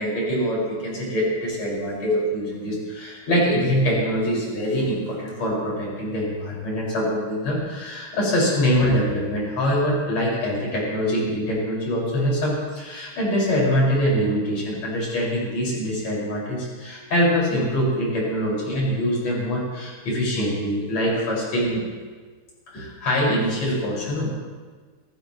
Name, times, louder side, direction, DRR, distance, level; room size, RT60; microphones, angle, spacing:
voice 1, 0.0-21.8 22.7-24.3, equal, 40° left, -4 dB, 6.7 m, -24 dB
27.0 x 15.5 x 3.1 m, 1.5 s
omnidirectional pair, 4.7 m